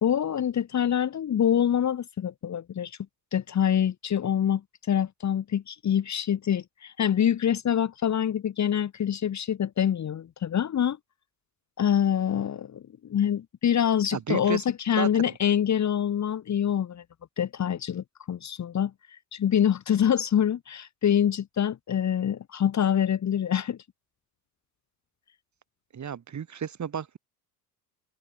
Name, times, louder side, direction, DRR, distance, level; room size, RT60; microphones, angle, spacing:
voice 1, 0.0-3.0 3.3-4.6 4.9-11.0 11.8-17.0 17.4-23.8, left 9 dB, 35° left, 1.7 m, -25 dB
voice 2, 14.1-14.6 15.0-15.1 25.9-27.2, right 8 dB, 35° right, 4.4 m, -32 dB
hypercardioid pair, 75°, 50 cm